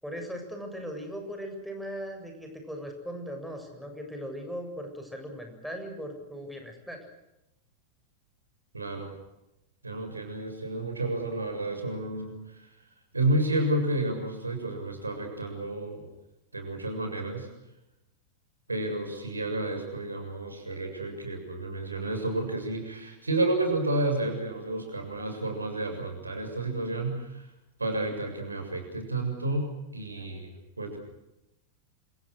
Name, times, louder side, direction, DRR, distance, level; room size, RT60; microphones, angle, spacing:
voice 1, 0.0-7.0, equal, ahead, 3 dB, 7.6 m, -38 dB
voice 2, 8.7-9.1 9.8-12.7 13.1-16.1 16.5-17.5 18.7-27.5 27.8-31.0, right 2 dB, 80° right, 5 dB, 7.3 m, -31 dB
28.0 x 27.5 x 6.6 m, 0.89 s
figure-of-eight pair, 90°, 0 cm